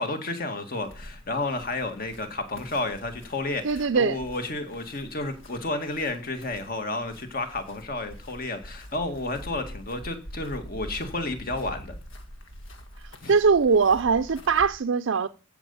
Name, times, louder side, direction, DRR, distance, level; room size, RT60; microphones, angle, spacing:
voice 1, 0.0-11.9 13.2-13.3, left 2 dB, 50° left, 1.9 m, -31 dB
sound 1, 0.8-14.7, equal, 85° left, 1.7 m, -45 dB
voice 2, 3.6-4.2 13.3-15.3, right 5 dB, 90° right, 0.5 m, -21 dB
15.0 x 5.3 x 7.0 m
head